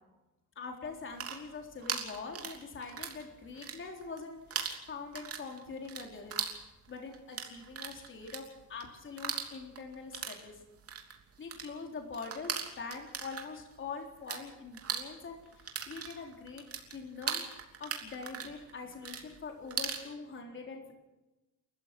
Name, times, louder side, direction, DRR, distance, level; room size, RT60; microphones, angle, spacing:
voice 1, 0.6-6.5 6.9-8.4 8.7-10.6 11.4-16.6 16.9-17.4 17.8-20.9, left 4 dB, 40° left, 2 dB, 3.9 m, -44 dB
sound 1, 1.0-3.2 3.5-4.2 4.5-14.4 14.7-20.0, right 7 dB, 45° right, 3.1 m, -39 dB
29.5 x 15.0 x 6.1 m, 1.0 s
cardioid pair, 150°, 32 cm